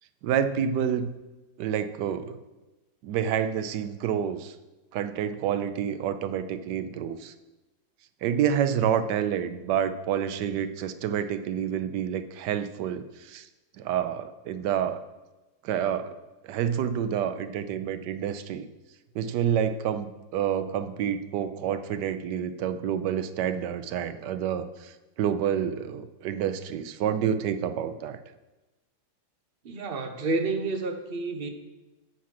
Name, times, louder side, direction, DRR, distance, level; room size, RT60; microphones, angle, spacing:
voice 1, 0.2-1.1 1.6-2.4 3.0-4.5 4.9-7.3 8.2-13.5 13.8-15.1 15.6-16.1 16.4-18.7 19.1-28.2, right 9 dB, 90° right, 11 dB, 1.2 m, -28 dB
voice 2, 29.6-31.5, right 3 dB, 45° right, 6 dB, 0.8 m, -29 dB
8.5 x 6.0 x 5.9 m, 1.1 s
omnidirectional pair, 1.8 m